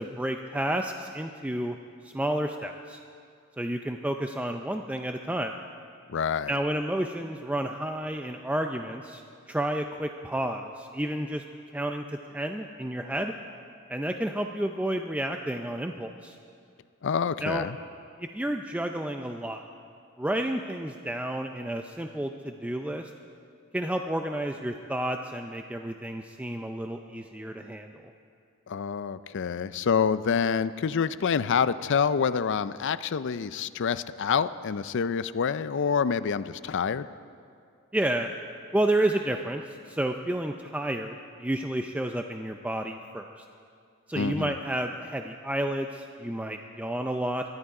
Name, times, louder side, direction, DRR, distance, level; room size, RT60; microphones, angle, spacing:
voice 1, 0.0-1.8 2.0-3.0 3.6-5.5 6.5-9.2 9.5-11.4 11.7-12.0 12.3-13.3 13.9-16.4 17.4-17.6 18.2-19.6 20.2-23.1 23.7-28.1 37.9-38.3 38.7-43.4 44.1-47.4, right 1 dB, 5° right, 4 dB, 0.5 m, -30 dB
voice 2, 6.1-6.5 17.0-17.8 28.7-37.1 44.2-44.6, left 6 dB, 60° left, 15 dB, 0.5 m, -27 dB
21.0 x 12.5 x 4.9 m, 2.3 s
head